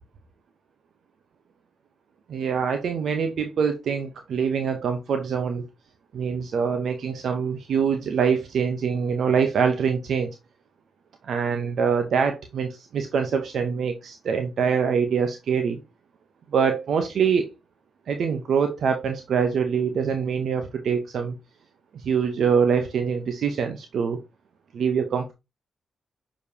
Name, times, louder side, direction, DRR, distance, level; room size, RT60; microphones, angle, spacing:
voice 1, 2.3-5.6 6.1-10.3 11.2-15.8 16.5-17.5 18.1-21.3 21.9-24.2 24.7-25.3, right 6 dB, 75° right, 0.8 m, -24 dB
6.7 x 5.1 x 2.8 m
supercardioid pair, 45°, 0 cm